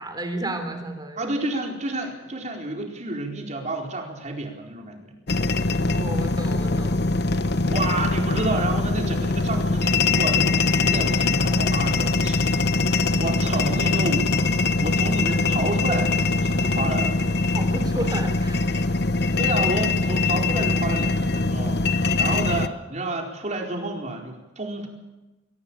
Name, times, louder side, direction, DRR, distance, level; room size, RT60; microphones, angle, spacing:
voice 1, 0.0-1.2 5.8-7.0 17.5-18.6, right 1 dB, 20° right, 6 dB, 3.5 m, -32 dB
voice 2, 1.2-5.1 7.4-12.4 13.2-17.2 18.7-18.9 19.4-24.9, right 2 dB, 40° right, 2 dB, 4.5 m, -30 dB
sound 1, 5.3-22.7, left 3 dB, 60° left, 1.0 m, -22 dB
24.0 x 17.0 x 8.9 m, 1.1 s
head